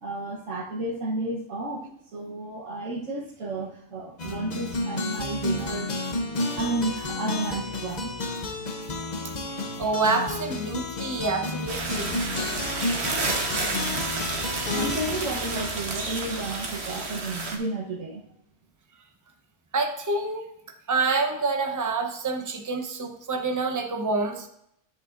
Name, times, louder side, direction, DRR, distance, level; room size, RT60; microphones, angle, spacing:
voice 1, 0.0-6.2 6.6-8.1 14.7-18.2, right 2 dB, 85° right, -5 dB, 1.5 m, -32 dB
sound 1, 4.2-16.5, left 2 dB, 40° left, 0.9 m, -32 dB
voice 2, 9.5-12.2 19.7-20.4 20.9-24.5, right 3 dB, 20° right, 4 dB, 0.8 m, -27 dB
sound 2, 11.7-17.6, right 3 dB, 60° right, 1.5 m, -30 dB
10.5 x 7.6 x 2.6 m, 0.74 s
omnidirectional pair, 1.3 m